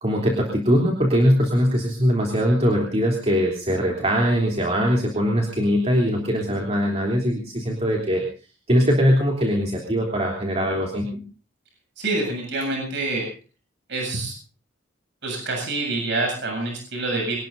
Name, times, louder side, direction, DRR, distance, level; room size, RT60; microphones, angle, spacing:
voice 1, 0.0-8.2 8.7-11.2, equal, 35° right, 0 dB, 3.3 m, -21 dB
voice 2, 12.0-13.3 13.9-14.3 15.2-17.4, right 2 dB, 60° right, 1 dB, 7.8 m, -26 dB
25.5 x 19.0 x 2.7 m, 0.36 s
head